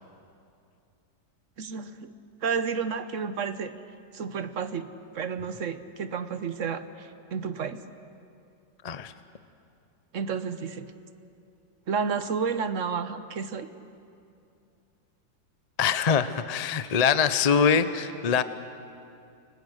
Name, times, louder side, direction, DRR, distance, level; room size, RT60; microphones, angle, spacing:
voice 1, 1.6-2.1 2.4-3.7 4.1-7.8 10.1-10.9 11.9-13.7, right 6 dB, 55° right, 11 dB, 1.1 m, -31 dB
voice 2, 15.8-18.4, left 6 dB, 45° left, 12 dB, 0.5 m, -23 dB
29.5 x 24.0 x 6.5 m, 2.5 s
omnidirectional pair, 1.9 m